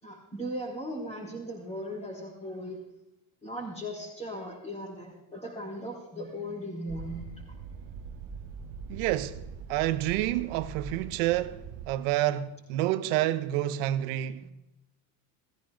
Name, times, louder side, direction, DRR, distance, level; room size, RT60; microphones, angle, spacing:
voice 1, 0.0-2.8 3.4-7.4 14.4-14.5, equal, 15° left, 4.2 m, -38 dB
sound 1, 6.9-11.9, right 5 dB, 45° right, 1.3 m, -42 dB
voice 2, 8.9-9.4 9.7-11.6 11.9-14.4, right 14 dB, 75° right, 1.1 m, -28 dB
17.0 x 15.0 x 3.9 m
cardioid pair, 155°, 44 cm